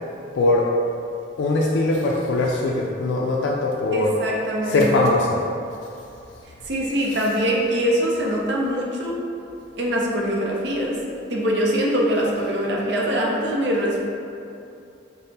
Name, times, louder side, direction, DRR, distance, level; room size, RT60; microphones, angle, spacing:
voice 1, 1.4-4.1 4.7-5.4, left 2 dB, 80° left, -2 dB, 0.3 m, -21 dB
voice 2, 3.9-4.9 6.6-9.2 9.8-11.0 11.3-14.0, equal, 70° right, -3 dB, 0.5 m, -23 dB
5.1 x 2.0 x 2.7 m, 2.6 s
head